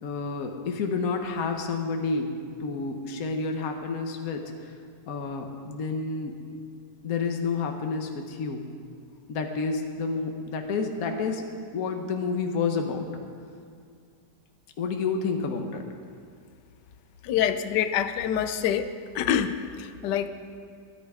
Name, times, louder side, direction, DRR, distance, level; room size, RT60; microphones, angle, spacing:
voice 1, 0.0-4.7 5.1-6.4 7.0-8.7 9.3-11.5 11.7-13.1 14.8-15.8, left 4 dB, 55° left, 4 dB, 1.5 m, -29 dB
voice 2, 17.2-18.9 19.1-20.3, left 9 dB, 75° left, 11 dB, 1.3 m, -26 dB
21.5 x 11.0 x 5.0 m, 2.2 s
omnidirectional pair, 1.9 m